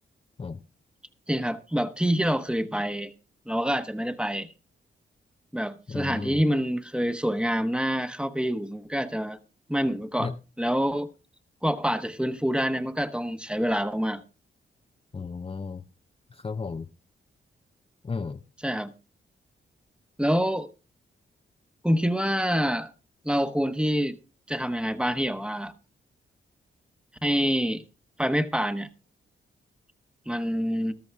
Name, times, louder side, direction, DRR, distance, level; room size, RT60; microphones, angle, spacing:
voice 1, 1.3-3.1 3.5-4.5 5.5-9.4 9.7-10.3 10.6-11.1 11.6-14.2 18.6-18.9 20.2-20.7 21.8-22.9 23.2-24.2 24.5-25.7 27.2-27.8 28.2-28.9 30.3-30.9, equal, 5° right, 1.0 m, -26 dB
voice 2, 5.9-6.4 10.2-10.3 15.1-15.8 16.3-16.9 18.0-18.4, left 4 dB, 25° left, 0.6 m, -34 dB
14.0 x 12.5 x 3.4 m
cardioid pair, 70°, 21 cm